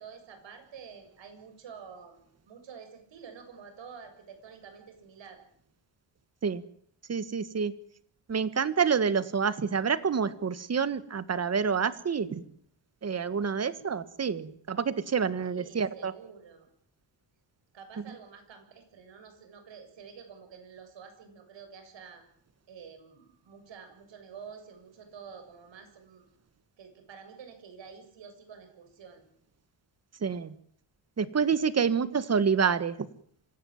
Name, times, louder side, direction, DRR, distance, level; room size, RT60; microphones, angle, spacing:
voice 1, 0.0-2.2 2.5-5.4 15.5-16.7 17.7-22.2 22.7-26.3 26.8-29.3, right 6 dB, 70° right, 7 dB, 7.4 m, -49 dB
voice 2, 7.1-7.7 8.3-12.4 13.0-16.1 30.2-30.5 31.2-32.9, right 6 dB, 35° right, 14 dB, 1.6 m, -28 dB
26.0 x 17.0 x 8.9 m, 0.64 s
cardioid pair, 145°, 46 cm